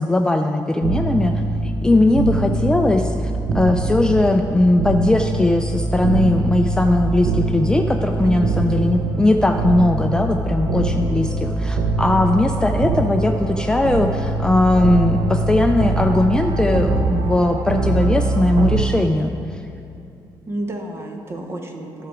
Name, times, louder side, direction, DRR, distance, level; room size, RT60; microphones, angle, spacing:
voice 1, 0.0-19.6, left 2 dB, 10° left, 4 dB, 0.3 m, -19 dB
sound 1, 0.8-18.8, right 3 dB, 75° right, 0.8 m, -23 dB
voice 2, 8.2-8.8 20.5-22.1, right 1 dB, 30° right, 3 dB, 1.0 m, -30 dB
12.5 x 5.9 x 4.9 m, 2.6 s
cardioid pair, 140°, 8 cm